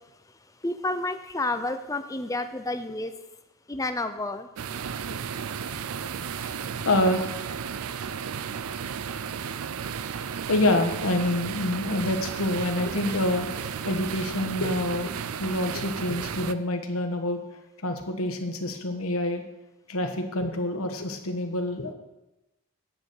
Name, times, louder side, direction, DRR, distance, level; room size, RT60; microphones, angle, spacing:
voice 1, 0.6-3.1 3.7-4.5, left 2 dB, 15° left, 9 dB, 0.6 m, -30 dB
sound 1, 4.6-16.5, right 7 dB, 75° right, 0.5 m, -34 dB
voice 2, 6.4-7.3 10.2-15.1 15.4-17.4 17.8-19.4 19.9-21.9, left 1 dB, 70° left, 4 dB, 1.3 m, -27 dB
9.4 x 6.8 x 6.5 m, 0.95 s
head